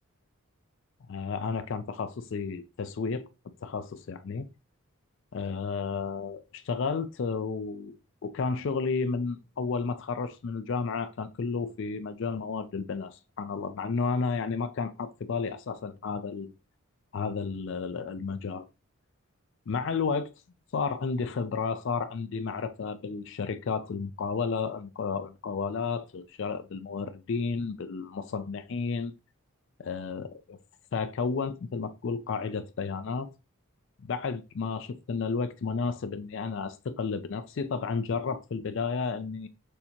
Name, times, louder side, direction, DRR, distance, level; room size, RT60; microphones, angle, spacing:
voice 1, 1.1-3.2 3.6-4.5 5.3-7.9 8.2-16.5 17.1-18.6 19.7-20.3 20.7-29.1 29.8-30.6 30.9-33.3 34.0-39.5, left 5 dB, 55° left, 0.4 m, -32 dB
6.4 x 2.8 x 2.8 m
head